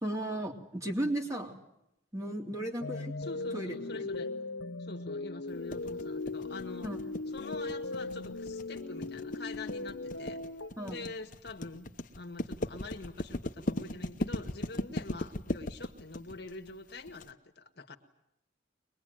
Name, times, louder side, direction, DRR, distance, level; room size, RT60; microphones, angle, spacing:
voice 1, 0.0-1.5 2.1-3.1 3.5-4.1 6.8-7.0 10.8-11.0, right 1 dB, 15° right, 1 dB, 3.1 m, -35 dB
sound 1, 2.8-10.7, left 3 dB, 75° left, 1.1 m, -38 dB
voice 2, 3.2-4.3 4.8-6.9 7.3-10.4 10.8-11.9 12.2-18.0, left 3 dB, 60° left, 5 dB, 1.8 m, -45 dB
sound 2, 5.7-17.3, left 1 dB, 45° left, 1.0 m, -37 dB
23.5 x 21.0 x 9.2 m, 0.82 s
head